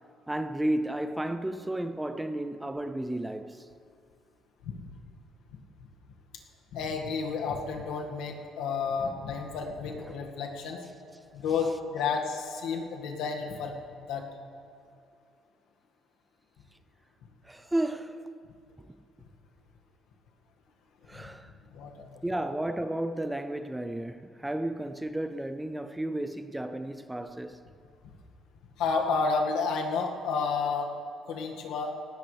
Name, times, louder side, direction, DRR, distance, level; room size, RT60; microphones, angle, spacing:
voice 1, 0.3-3.7 9.9-10.2 17.4-18.3 21.1-21.5 22.2-27.6, right 1 dB, 5° right, 0.4 m, -33 dB
voice 2, 6.7-10.8 11.3-13.7 14.1-14.3 21.1-21.3 21.7-22.2 28.8-30.9 31.3-31.9, left 5 dB, 85° left, 2.0 m, -31 dB
19.0 x 18.0 x 3.4 m
cardioid pair, 175°, 0 cm